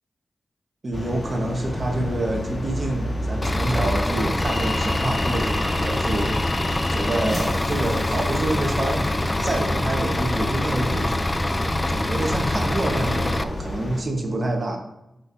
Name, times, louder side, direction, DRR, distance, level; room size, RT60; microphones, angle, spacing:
voice 1, 0.8-6.4 6.9-11.2 11.9-14.8, right 1 dB, 45° right, 1 dB, 1.3 m, -27 dB
sound 1, 0.9-14.0, left 1 dB, 40° left, 1.7 m, -30 dB
Bus / Idling, 3.4-13.4, left 1 dB, 25° left, 0.5 m, -25 dB
8.7 x 6.3 x 2.7 m, 0.92 s
cardioid pair, 70°, 0 cm